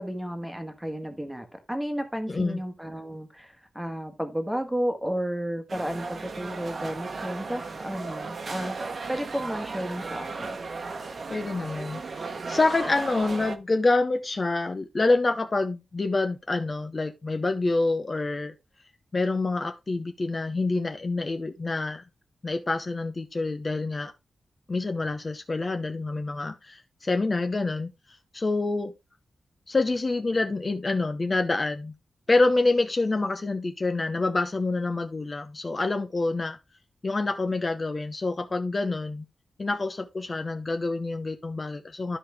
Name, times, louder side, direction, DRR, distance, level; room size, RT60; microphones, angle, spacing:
voice 1, 0.0-8.7 9.1-10.6, equal, 5° right, 1.5 m, -32 dB
voice 2, 2.3-2.6 11.3-18.5 19.1-22.0 22.4-24.1 24.7-27.9 28.3-28.9 29.7-31.9 32.3-36.6 37.0-39.3 39.6-42.2, left 3 dB, 30° left, 0.8 m, -27 dB
sound 1, 5.7-13.6, right 4 dB, 50° right, 1.2 m, -36 dB
13.0 x 5.1 x 3.4 m
wide cardioid pair, 160°, 0 cm